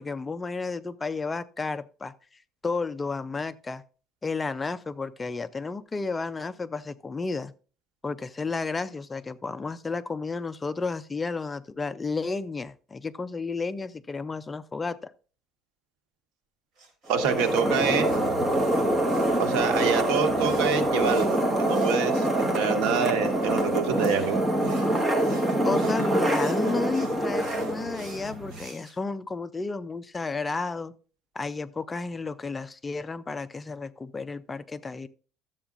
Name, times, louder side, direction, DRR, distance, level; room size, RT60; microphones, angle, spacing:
voice 1, 0.0-2.1 2.6-3.8 4.2-7.5 8.0-15.1 25.6-30.9 31.4-35.1, left 4 dB, 15° left, 0.4 m, -32 dB
sound 1, 16.8-22.6 23.4-28.9, right 3 dB, 50° right, 4.6 m, -51 dB
sound 2, 17.1-28.6, right 1 dB, 15° right, 1.4 m, -25 dB
voice 2, 17.1-18.1 19.4-24.4, right 6 dB, 85° right, 1.4 m, -26 dB
13.0 x 7.9 x 2.5 m
cardioid pair, 150°, 0 cm